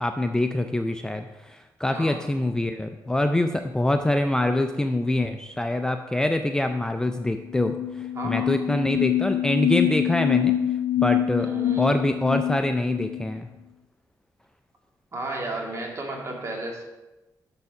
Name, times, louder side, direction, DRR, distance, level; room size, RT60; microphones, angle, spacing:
voice 1, 0.0-10.5 11.0-11.5 11.8-13.5, left 1 dB, 10° left, 6 dB, 0.4 m, -25 dB
voice 2, 1.9-2.2 8.2-8.6 11.4-11.9 15.1-16.8, right 2 dB, 40° right, 0 dB, 2.0 m, -33 dB
sound 1, 7.2-7.3 7.5-13.2, left 11 dB, 70° left, 0.6 m, -25 dB
6.9 x 6.8 x 4.8 m, 1.1 s
cardioid pair, 100°, 8 cm